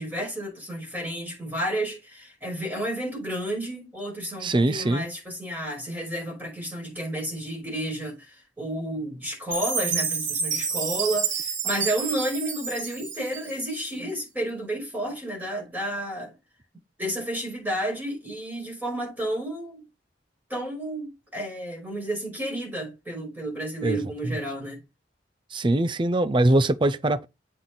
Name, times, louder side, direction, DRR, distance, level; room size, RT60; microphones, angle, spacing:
voice 1, 0.0-16.3 17.0-19.8 20.5-24.8, right 1 dB, 10° right, 5.5 m, -31 dB
voice 2, 4.4-5.1 23.8-24.0 24.2-24.4 25.5-27.3, right 1 dB, 25° right, 0.5 m, -22 dB
Chime, 9.5-13.8, right 5 dB, 85° right, 2.9 m, -29 dB
8.0 x 6.0 x 4.0 m
head